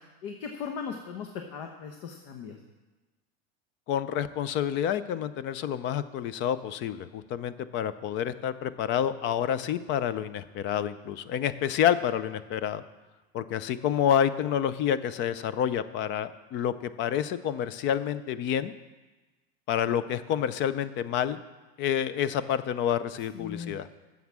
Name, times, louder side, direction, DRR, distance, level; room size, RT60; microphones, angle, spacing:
voice 1, 0.2-2.6 23.3-23.8, left 6 dB, 60° left, 4 dB, 1.1 m, -38 dB
voice 2, 3.9-12.8 13.3-18.7 19.7-21.4 21.8-23.9, left 9 dB, 40° left, 14 dB, 0.5 m, -28 dB
9.5 x 7.2 x 7.4 m, 1.2 s
supercardioid pair, 145°, 31 cm